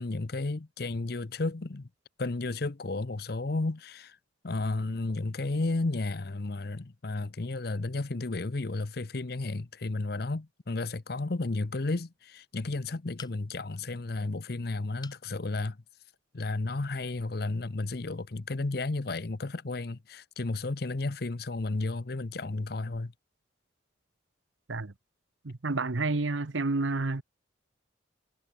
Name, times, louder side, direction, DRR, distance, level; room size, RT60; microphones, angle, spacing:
voice 1, 0.0-1.9 2.2-4.2 4.4-15.8 16.3-23.1, left 2 dB, 55° left, 0.8 m, -33 dB
sound 1, 13.2-13.7 15.0-15.3 15.8-15.9 16.3-16.4, left 5 dB, 20° left, 3.6 m, -48 dB
voice 2, 25.4-27.2, right 3 dB, 80° right, 1.0 m, -29 dB
head